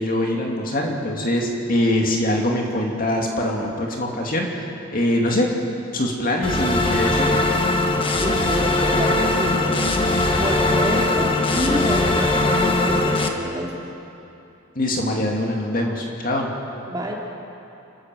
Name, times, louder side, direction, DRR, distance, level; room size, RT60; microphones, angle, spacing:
voice 1, 0.0-5.5 5.9-7.5 14.7-16.5, left 1 dB, 40° left, 0 dB, 2.4 m, -23 dB
sound 1, 6.4-13.3, left 2 dB, 25° left, 1.3 m, -20 dB
voice 2, 8.2-9.9 10.2-13.8 16.9-17.1, equal, 20° right, -2 dB, 2.8 m, -28 dB
28.5 x 13.5 x 7.8 m, 2.8 s
head